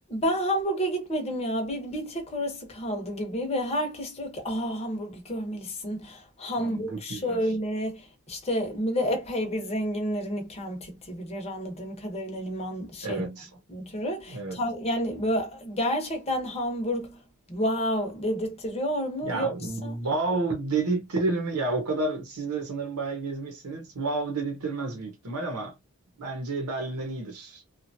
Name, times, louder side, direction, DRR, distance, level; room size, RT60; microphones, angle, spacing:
voice 1, 0.1-13.2 13.7-17.2 17.5-19.5 19.8-20.0, equal, 30° left, 0.8 m, -30 dB
voice 2, 6.6-7.4 13.0-13.5 14.3-14.6 19.2-25.7 26.2-27.6, right 3 dB, 85° right, 0.9 m, -30 dB
2.8 x 2.4 x 2.6 m
head